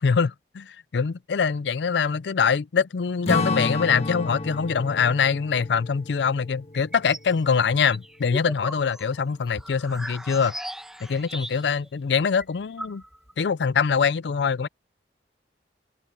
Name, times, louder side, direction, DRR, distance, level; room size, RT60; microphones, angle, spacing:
voice 1, 0.0-10.5 11.0-13.0 13.4-14.7, left 6 dB, 75° left, 0.5 m, -24 dB
Strum, 3.3-7.9, left 2 dB, 35° left, 1.5 m, -31 dB
sound 1, 6.7-7.3 7.7-11.9 12.1-12.2 12.4-13.4, right 1 dB, 5° right, 1.3 m, -38 dB
open air
head